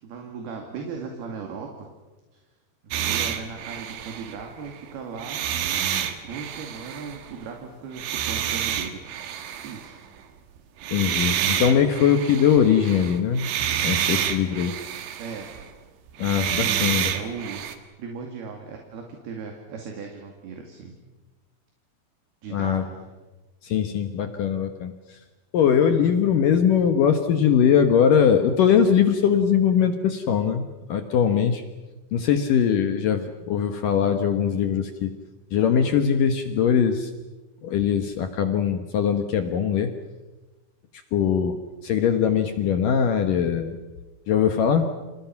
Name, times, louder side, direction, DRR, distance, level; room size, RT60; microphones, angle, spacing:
voice 1, 0.0-1.9 2.3-2.4 2.8-5.4 6.2-9.1 9.6-10.0 15.2-15.5 16.6-17.7 18.0-20.9 22.4-23.1, right 5 dB, 60° right, 2 dB, 4.0 m, -37 dB
sound 1, 2.9-4.8 5.2-7.3 8.0-9.9 10.8-15.7 16.1-17.8, right 10 dB, 75° right, 4.0 m, -28 dB
voice 2, 10.9-13.5 13.8-14.8 16.2-17.1 22.5-22.8 23.6-25.2 25.5-31.6 32.1-35.1 35.5-37.1 37.6-39.9 41.1-43.8 44.3-44.9, left 8 dB, 70° left, 7 dB, 2.1 m, -21 dB
29.5 x 28.0 x 5.9 m, 1.2 s
omnidirectional pair, 5.5 m